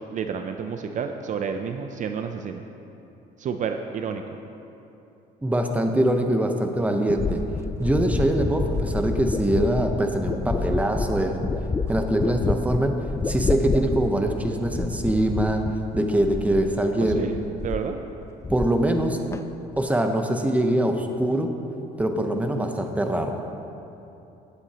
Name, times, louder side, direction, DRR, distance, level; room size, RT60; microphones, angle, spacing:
voice 1, 0.0-2.6 3.4-4.2 17.0-18.0, right 6 dB, 50° right, 6 dB, 0.5 m, -30 dB
voice 2, 5.4-7.4 7.8-11.5 11.9-12.9 13.3-15.6 15.9-17.3 18.5-19.2 19.8-21.5 22.0-23.4, right 1 dB, 10° right, 4 dB, 0.8 m, -23 dB
sound 1, 6.3-6.4 7.1-16.8 17.1-17.9 18.2-19.1 19.3-19.8, left 3 dB, 15° left, 0.3 m, -29 dB
16.0 x 7.9 x 2.9 m, 2.9 s
cardioid pair, 110°, 17 cm